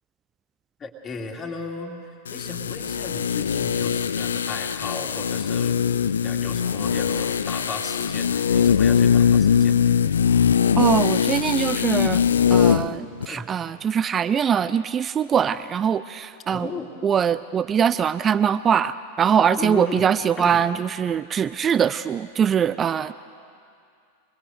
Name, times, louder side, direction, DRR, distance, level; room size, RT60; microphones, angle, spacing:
voice 1, 0.8-2.0 2.3-5.8 6.2-9.8 13.3-13.5 16.5-16.9 19.6-20.1 20.4-20.6, left 3 dB, 20° left, 0 dB, 2.7 m, -35 dB
sound 1, 2.3-12.9 13.2-13.3, left 7 dB, 70° left, 0.6 m, -21 dB
voice 2, 10.8-12.2 12.5-16.7 17.0-23.1, right 8 dB, 25° right, 14 dB, 0.4 m, -22 dB
25.0 x 22.0 x 6.6 m, 2.4 s
figure-of-eight pair, 90°, 0 cm